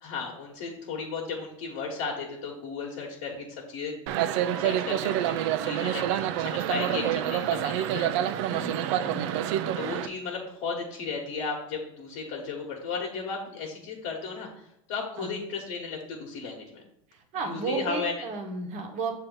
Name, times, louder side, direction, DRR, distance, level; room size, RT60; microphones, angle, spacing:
voice 1, 0.0-4.0 4.6-8.1 9.8-16.8 17.4-18.1, left 4 dB, 60° left, -3 dB, 1.3 m, -35 dB
sound 1, 4.1-10.1, right 11 dB, 60° right, 0.5 m, -27 dB
voice 2, 8.4-9.3 15.2-15.4 17.1-19.2, right 4 dB, 40° right, 3 dB, 1.2 m, -34 dB
6.8 x 2.8 x 5.4 m, 0.76 s
supercardioid pair, 115°, 17 cm